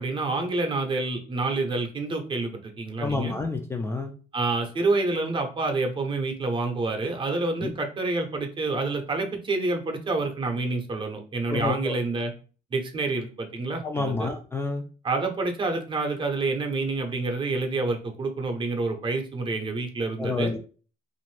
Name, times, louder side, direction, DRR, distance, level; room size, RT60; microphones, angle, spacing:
voice 1, 0.0-3.3 4.3-12.3 12.7-14.3 15.0-20.5, right 3 dB, 30° right, 4 dB, 0.7 m, -28 dB
voice 2, 3.0-4.1 7.6-7.7 11.5-12.0 13.8-14.8 20.2-20.6, left 3 dB, 15° left, 2 dB, 0.3 m, -29 dB
2.6 x 2.5 x 3.1 m, 0.37 s
cardioid pair, 110°, 17 cm